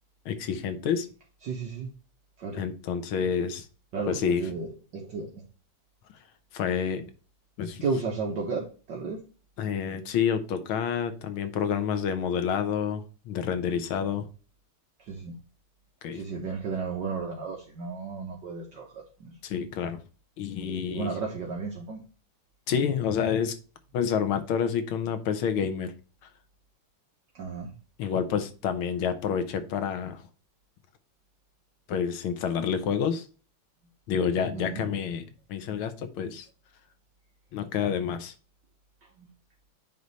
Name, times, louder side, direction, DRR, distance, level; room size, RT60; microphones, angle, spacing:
voice 1, 0.3-1.1 2.5-3.7 4.1-4.5 6.5-7.0 7.6-7.8 9.6-14.3 16.0-16.2 19.4-20.0 20.4-21.1 22.7-23.6 23.9-25.9 28.0-30.2 31.9-33.3 34.1-36.5 37.5-38.3, left 7 dB, 75° left, 1.7 m, -28 dB
voice 2, 1.4-1.9 2.4-2.6 3.9-5.3 7.8-9.2 15.1-15.4 16.1-19.4 20.6-22.0 27.4-27.7 34.5-34.8 39.2-39.3, right 4 dB, 60° right, 1.7 m, -33 dB
9.4 x 3.3 x 4.1 m
omnidirectional pair, 2.4 m